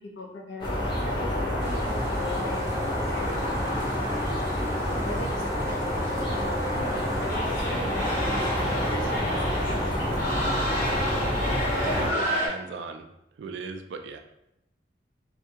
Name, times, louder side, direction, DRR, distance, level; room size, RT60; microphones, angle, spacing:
voice 1, 0.0-3.5 4.0-4.2 5.1-6.0 6.4-9.8, left 1 dB, 75° left, -2 dB, 0.7 m, -39 dB
sound 1, 0.6-12.1, equal, 25° left, 0.6 m, -28 dB
sound 2, 1.6-7.4, right 1 dB, 15° right, 0.6 m, -47 dB
sound 3, 7.3-12.5, equal, 50° left, 1.1 m, -30 dB
voice 2, 11.8-13.1 13.4-14.2, right 4 dB, 75° right, 6 dB, 0.3 m, -37 dB
2.6 x 2.3 x 2.8 m, 0.86 s
head